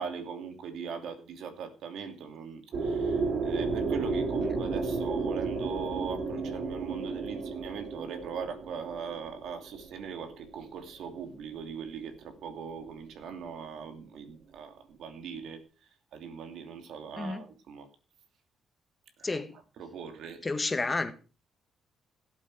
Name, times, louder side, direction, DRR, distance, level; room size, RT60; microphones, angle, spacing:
voice 1, 0.0-15.6 16.1-17.9 19.2-20.4, right 6 dB, 75° right, 2.9 m, -40 dB
sound 1, 2.7-10.6, right 4 dB, 60° right, 3.7 m, -32 dB
voice 2, 20.4-21.1, left 3 dB, 25° left, 1.8 m, -30 dB
17.0 x 8.5 x 4.9 m
cardioid pair, 90°, 0 cm